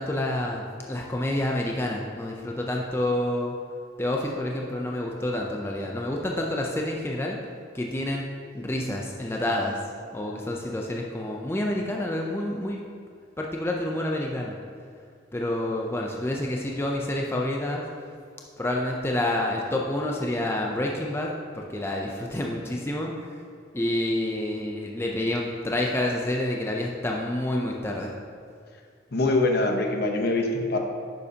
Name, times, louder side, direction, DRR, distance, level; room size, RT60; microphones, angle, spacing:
voice 1, 0.0-3.5 4.0-7.4 7.7-8.3 8.5-9.8 10.1-12.8 13.4-14.5 15.3-17.8 18.6-23.1 23.7-28.1, left 1 dB, 15° left, -1 dB, 0.5 m, -28 dB
voice 2, 29.1-30.8, left 2 dB, 55° left, 3 dB, 0.9 m, -23 dB
10.0 x 6.7 x 2.8 m, 2.2 s
head